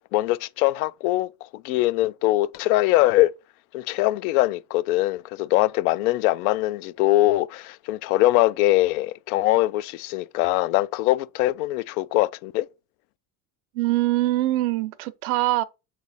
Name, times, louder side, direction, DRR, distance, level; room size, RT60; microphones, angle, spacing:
voice 1, 0.1-3.3 3.7-12.7, left 16 dB, 85° left, 0.5 m, -22 dB
voice 2, 13.7-15.6, right 17 dB, 85° right, 0.7 m, -23 dB
7.2 x 3.3 x 4.1 m
supercardioid pair, 110°, 42 cm